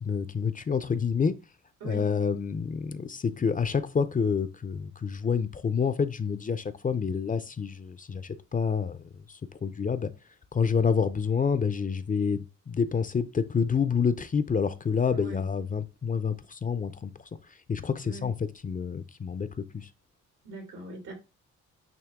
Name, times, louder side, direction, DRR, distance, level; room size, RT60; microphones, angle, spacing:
voice 1, 0.0-1.3 1.8-9.0 9.6-10.1 10.5-17.1 17.7-19.5 19.7-19.9, left 6 dB, 25° left, 0.6 m, -28 dB
voice 2, 15.1-15.4 18.0-18.3 20.4-21.1, right 2 dB, 80° right, 2.9 m, -41 dB
8.9 x 3.0 x 3.6 m
cardioid pair, 90°, 30 cm